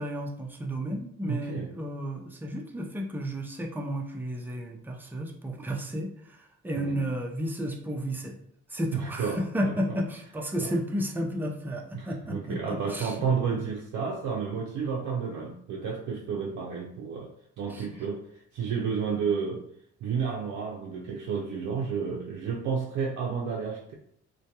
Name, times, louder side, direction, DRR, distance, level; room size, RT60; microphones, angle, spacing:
voice 1, 0.0-8.4 8.7-13.2 17.7-17.9, equal, 5° right, 1 dB, 0.4 m, -32 dB
voice 2, 1.3-1.7 6.8-7.1 8.9-10.0 10.6-10.7 11.9-18.3 18.5-19.6 20.0-23.9, right 6 dB, 70° right, -1 dB, 0.4 m, -31 dB
2.2 x 2.2 x 2.8 m, 0.69 s
cardioid pair, 90°, 30 cm